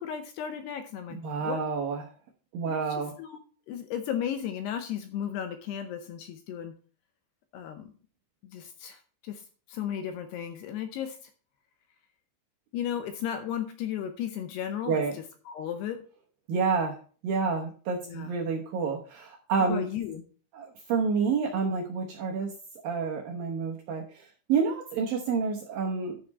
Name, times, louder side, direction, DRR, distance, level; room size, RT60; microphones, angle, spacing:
voice 1, 0.0-1.6 2.7-3.4 3.7-6.7 7.5-7.9 8.4-11.3 12.7-16.0 18.1-18.3 19.6-20.2, left 9 dB, 80° left, 8 dB, 2.5 m, -35 dB
voice 2, 1.1-2.1 2.5-3.1 14.9-15.1 16.5-17.0 17.2-19.9 20.5-22.5 22.8-26.2, right 5 dB, 70° right, -1 dB, 2.3 m, -29 dB
11.0 x 6.8 x 4.1 m, 0.40 s
omnidirectional pair, 5.4 m